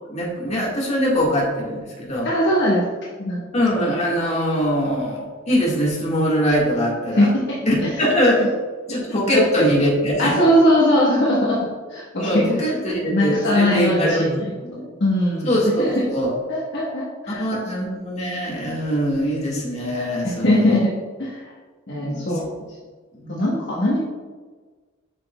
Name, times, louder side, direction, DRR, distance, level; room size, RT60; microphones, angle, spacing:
voice 1, 0.1-2.3 3.5-7.3 7.7-8.4 8.9-10.4 12.2-14.3 14.6-14.9 15.4-16.3 17.3-20.8 22.0-22.3 23.2-23.4, equal, 35° left, -4 dB, 1.7 m, -22 dB
voice 2, 2.2-2.9 3.2-3.4 7.2-7.9 8.9-9.0 9.3-9.7 10.2-12.5 13.1-14.5 15.0-16.0 16.5-17.5 20.4-20.9 21.2-21.5 21.9-22.6 23.3-24.0, left 1 dB, 60° left, -5 dB, 1.1 m, -20 dB
7.4 x 5.9 x 2.3 m, 1.4 s
head